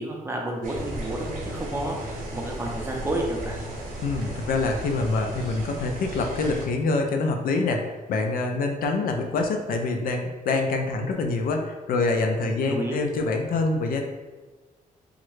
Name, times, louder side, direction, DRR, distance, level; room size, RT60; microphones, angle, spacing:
voice 1, 0.0-3.6 12.4-13.0, right 1 dB, 15° right, -1 dB, 0.5 m, -31 dB
sound 1, 0.6-6.7, right 1 dB, 60° right, 0.8 m, -35 dB
voice 2, 4.0-14.0, left 3 dB, 70° left, 4 dB, 0.4 m, -25 dB
3.6 x 2.1 x 3.1 m, 1.3 s
cardioid pair, 125°, 15 cm